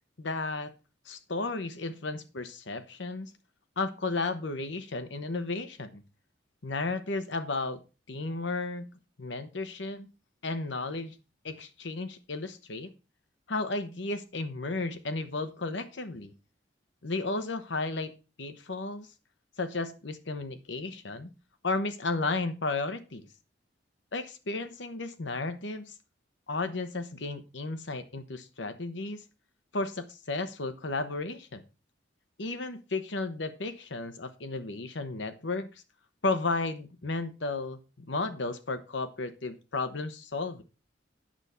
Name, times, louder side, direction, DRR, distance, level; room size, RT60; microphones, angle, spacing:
voice 1, 0.2-0.7 1.1-3.3 3.8-6.0 6.6-7.8 8.1-8.8 9.2-10.1 10.4-11.2 11.4-12.9 13.5-16.3 17.0-18.1 18.4-19.1 19.6-21.3 21.6-23.3 24.1-25.9 26.5-29.2 29.7-31.6 32.4-35.7 36.2-40.6, left 3 dB, 75° left, 10 dB, 1.0 m, -33 dB
8.9 x 6.8 x 4.3 m, 0.31 s
head